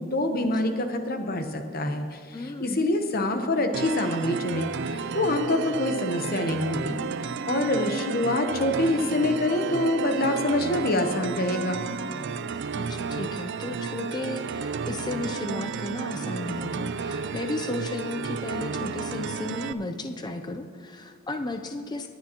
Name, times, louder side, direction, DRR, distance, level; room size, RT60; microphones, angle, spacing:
voice 1, 0.0-11.8, left 1 dB, 40° left, 6 dB, 0.9 m, -26 dB
voice 2, 2.3-2.9 12.7-22.1, left 2 dB, 20° left, 6 dB, 0.5 m, -34 dB
sound 1, 3.7-19.7, right 5 dB, 50° right, 0.3 m, -32 dB
19.0 x 9.3 x 2.9 m, 2.1 s
head